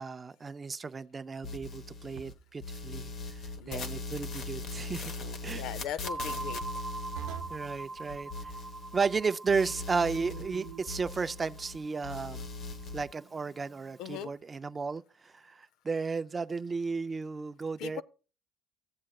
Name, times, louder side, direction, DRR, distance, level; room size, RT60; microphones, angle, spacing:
voice 1, 0.0-5.1 5.4-5.6 7.5-8.5 8.9-12.4 12.9-18.0, right 4 dB, 25° right, 0.4 m, -34 dB
sound 1, 1.4-2.3 2.6-9.2 9.5-11.8 12.0-13.0, left 3 dB, 50° left, 1.1 m, -40 dB
sound 2, 2.2-2.6 5.2-5.6 7.2-7.7 10.2-10.9, right 14 dB, 80° right, 0.6 m, -44 dB
voice 2, 5.5-6.6 14.0-14.3 17.8-18.0, left 9 dB, 70° left, 0.6 m, -39 dB
sound 3, 6.0-14.2, right 3 dB, 5° left, 1.0 m, -44 dB
15.5 x 7.5 x 2.3 m
cardioid pair, 115°, 0 cm